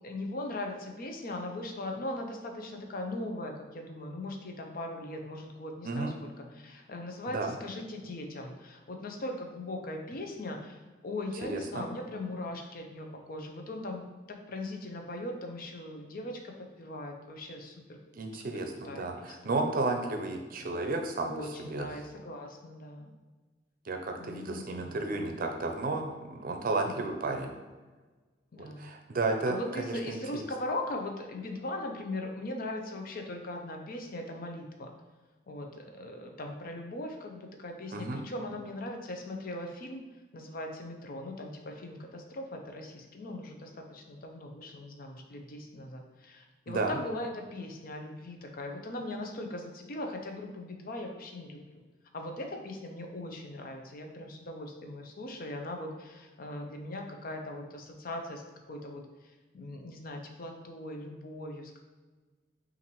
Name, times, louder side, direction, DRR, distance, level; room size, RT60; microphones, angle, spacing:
voice 1, 0.0-10.8 11.0-18.0 18.3-18.4 18.8-19.5 20.5-20.7 21.2-23.1 24.2-25.0 26.9-27.0 28.5-28.9 29.5-34.9 35.5-40.0 40.3-51.8 52.1-58.4 58.7-59.0 59.5-61.8, left 1 dB, 50° left, 3 dB, 0.6 m, -39 dB
voice 2, 11.4-11.8 18.1-21.3 21.6-21.9 23.9-27.5 28.6-30.5 37.9-38.2 46.7-47.0, right 3 dB, 50° right, 4 dB, 0.5 m, -32 dB
5.7 x 2.6 x 3.0 m, 1.3 s
head